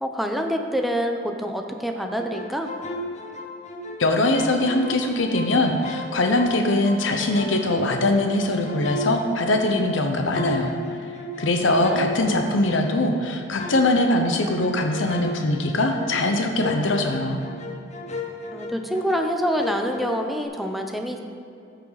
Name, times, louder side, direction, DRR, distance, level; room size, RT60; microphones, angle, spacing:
voice 1, 0.0-2.7 11.8-12.1 18.5-21.2, equal, ahead, 3 dB, 0.7 m, -26 dB
sound 1, 2.1-4.0 4.3-7.0 7.3-13.1 13.6-19.3 19.6-20.4, left 1 dB, 40° left, 0.9 m, -35 dB
voice 2, 4.0-10.7 11.4-17.4, left 2 dB, 80° left, 4 dB, 0.9 m, -22 dB
14.0 x 6.7 x 4.0 m, 2.5 s
head